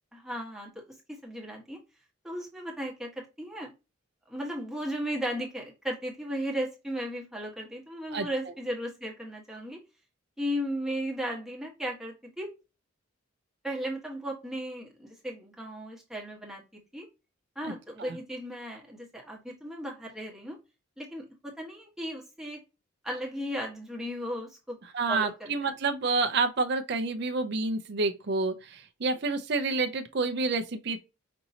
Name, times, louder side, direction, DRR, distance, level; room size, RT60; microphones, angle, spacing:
voice 1, 0.1-1.8 2.2-3.7 4.3-9.8 10.4-12.5 13.6-17.1 17.5-20.6 21.0-22.6 23.0-24.8 25.1-25.7, equal, ahead, 1.2 m, -36 dB
voice 2, 24.9-31.0, right 3 dB, 55° right, 0.5 m, -29 dB
5.3 x 2.8 x 2.7 m
head